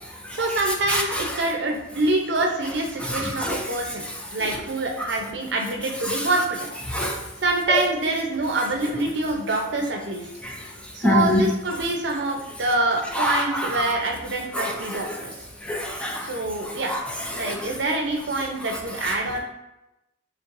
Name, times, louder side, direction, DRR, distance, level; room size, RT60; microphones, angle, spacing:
voice 1, 0.3-4.0 4.3-6.6 7.4-10.2 10.9-15.3 16.2-16.9 17.3-19.4, right 2 dB, 65° right, 1 dB, 0.7 m, -25 dB
voice 2, 3.1-3.6 6.9-7.2 10.4-10.5 11.0-11.4 13.2-13.7 14.5-14.7 15.7-16.2 16.9-17.0 17.4-17.5, left 1 dB, 5° left, 0 dB, 0.4 m, -24 dB
4.4 x 3.2 x 2.6 m, 0.91 s
head